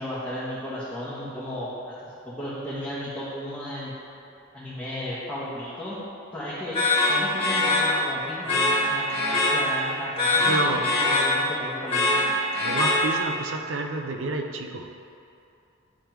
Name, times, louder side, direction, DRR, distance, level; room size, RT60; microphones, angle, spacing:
voice 1, 0.0-3.9 4.5-6.0 6.3-12.2, left 1 dB, 10° left, -12 dB, 1.1 m, -34 dB
sound 1, 6.7-13.5, left 2 dB, 30° left, 1.5 m, -24 dB
voice 2, 10.4-10.9 12.6-14.8, right 2 dB, 85° right, 4 dB, 0.6 m, -29 dB
9.2 x 3.3 x 4.5 m, 2.6 s
head